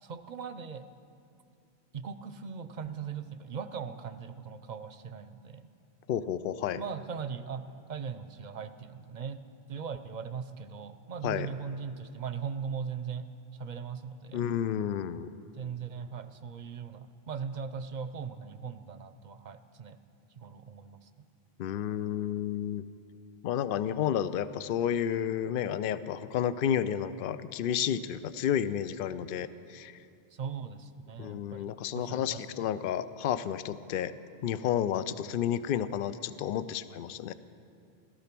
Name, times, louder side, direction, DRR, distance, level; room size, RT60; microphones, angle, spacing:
voice 1, 0.0-0.8 1.9-5.7 6.8-13.3 13.5-14.5 15.5-20.0 20.4-21.1 30.3-32.6, right 6 dB, 50° right, 11 dB, 0.7 m, -39 dB
voice 2, 6.1-6.8 11.2-11.5 14.3-15.3 21.6-22.9 23.4-30.0 31.2-34.1 34.4-37.3, left 9 dB, 65° left, 14 dB, 0.7 m, -31 dB
16.0 x 13.5 x 6.0 m, 2.4 s
omnidirectional pair, 1.0 m